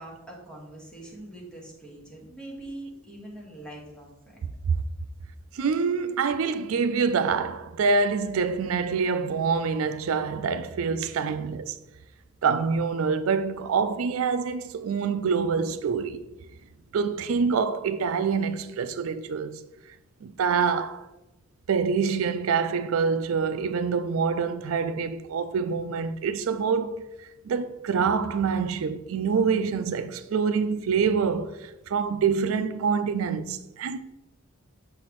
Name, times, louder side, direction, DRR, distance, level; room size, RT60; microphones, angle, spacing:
voice 1, 0.0-4.1, right 1 dB, 5° left, 1.7 m, -42 dB
voice 2, 5.5-11.7 12.4-16.2 16.9-19.6 20.2-21.0 21.7-27.1 27.5-34.0, right 5 dB, 85° right, 0.4 m, -26 dB
6.8 x 5.8 x 3.1 m
head